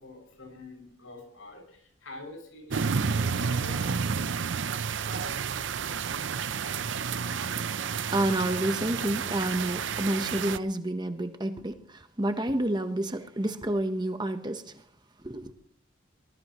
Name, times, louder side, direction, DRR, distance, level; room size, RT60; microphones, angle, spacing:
voice 1, 0.0-4.0 4.3-4.4, left 1 dB, 85° left, 6.6 m, -46 dB
sound 1, 2.7-10.6, right 6 dB, 65° right, 0.6 m, -30 dB
voice 2, 8.1-14.8 15.2-15.5, right 1 dB, 20° right, 1.0 m, -29 dB
23.5 x 20.0 x 3.1 m
head